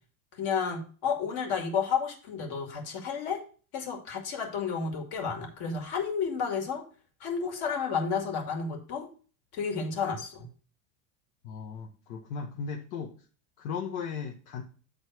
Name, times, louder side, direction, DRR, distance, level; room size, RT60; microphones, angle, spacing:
voice 1, 0.4-3.4 3.7-6.8 7.2-9.1 9.5-10.5, left 6 dB, 60° left, 3 dB, 2.2 m, -31 dB
voice 2, 11.4-13.1 13.6-14.6, left 6 dB, 75° left, 1 dB, 1.2 m, -36 dB
8.2 x 4.0 x 4.5 m, 0.39 s
supercardioid pair, 115°, 43 cm